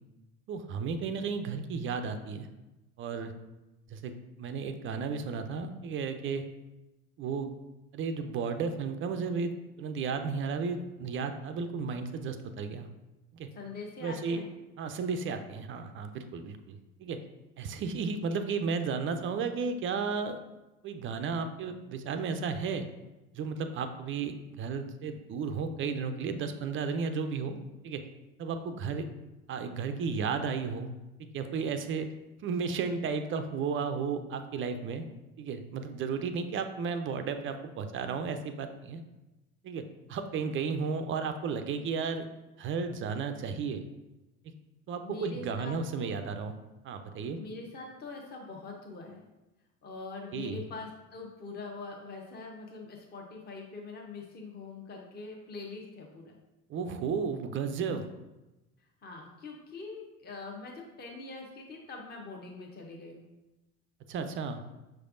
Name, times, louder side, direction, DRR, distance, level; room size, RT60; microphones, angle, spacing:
voice 1, 0.5-2.5 3.0-3.3 3.9-4.1 4.4-6.4 7.2-7.5 7.9-12.9 13.3-13.5 14.0-14.4 14.8-17.2 17.6-20.4 20.8-22.9 23.3-27.6 27.8-28.0 28.4-29.1 29.5-30.9 31.2-32.1 32.4-35.1 35.4-39.0 39.6-42.3 42.6-43.8 44.9-46.5 46.8-47.4 50.3-50.6 56.7-58.1 64.1-64.6, right 5 dB, 30° right, 8 dB, 0.4 m, -33 dB
voice 2, 13.5-14.5 45.0-46.2 47.4-49.2 49.8-56.4 59.0-63.3, left 3 dB, 25° left, 0 dB, 0.8 m, -43 dB
5.9 x 3.3 x 2.5 m, 1.0 s
hypercardioid pair, 65°, 43 cm